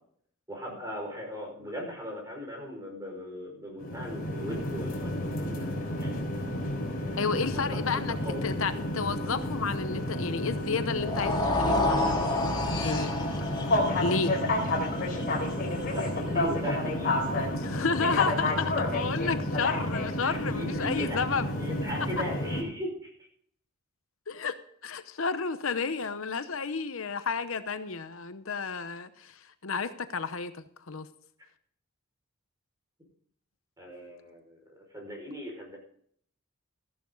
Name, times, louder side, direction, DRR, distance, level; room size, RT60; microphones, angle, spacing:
voice 1, 0.5-6.3 7.0-7.2 7.5-8.5 15.9-17.2 20.2-21.2 21.6-23.1 33.8-34.6 34.9-35.8, equal, 15° right, 0 dB, 5.4 m, -38 dB
sound 1, 3.8-22.6, left 1 dB, 45° left, 4.0 m, -30 dB
voice 2, 7.2-12.2 12.8-13.1 14.0-14.3 17.6-21.5 24.3-24.6 24.8-29.3 29.6-31.1, left 5 dB, 70° left, 11 dB, 0.8 m, -31 dB
sound 2, 11.0-17.2, left 2 dB, 20° left, 2.8 m, -31 dB
14.0 x 12.0 x 3.9 m, 0.62 s
head